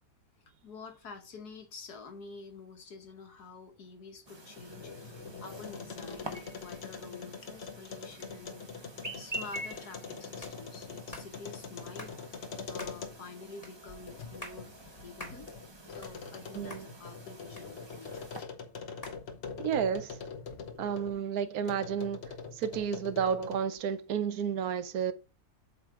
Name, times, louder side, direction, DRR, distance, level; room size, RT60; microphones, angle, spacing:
voice 1, 0.6-8.9 9.1-14.7 15.0-18.5, left 4 dB, 80° left, 1.8 m, -48 dB
Chirp tweet, 4.3-18.4, right 1 dB, 20° right, 0.8 m, -47 dB
sound 1, 4.4-13.4 13.9-21.2 21.6-23.8, left 5 dB, 50° left, 1.0 m, -44 dB
sound 2, 10.4-10.6 11.1-11.3 12.0-12.2 12.8-13.0 13.6-13.8 14.2-14.6 15.2-15.4 15.8-16.4 16.7-16.9 17.6-18.1 19.0-19.2, left 1 dB, 25° left, 1.5 m, -46 dB
voice 2, 16.5-16.9 19.6-20.2 20.8-25.1, right 7 dB, 75° right, 1.1 m, -31 dB
7.9 x 3.0 x 4.7 m
omnidirectional pair, 1.6 m